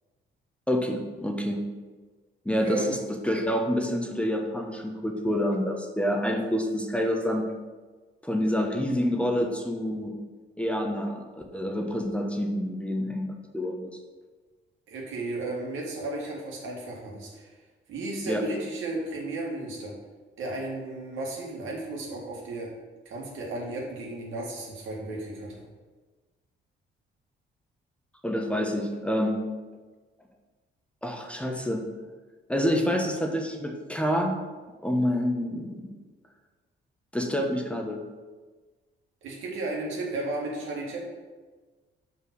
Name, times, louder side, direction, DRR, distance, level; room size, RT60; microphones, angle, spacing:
voice 1, 0.7-1.6 2.4-7.5 8.2-10.1 10.6-13.9 18.3-18.4 28.2-29.5 31.0-31.8 32.5-34.3 34.8-35.9 37.1-38.0, equal, 5° left, 2 dB, 1.0 m, -27 dB
voice 2, 2.5-3.0 14.9-17.5 17.9-19.9 20.4-22.7 23.1-25.6 39.2-41.0, right 2 dB, 80° right, -2 dB, 2.1 m, -34 dB
5.6 x 4.7 x 6.2 m, 1.3 s
cardioid pair, 90°, 20 cm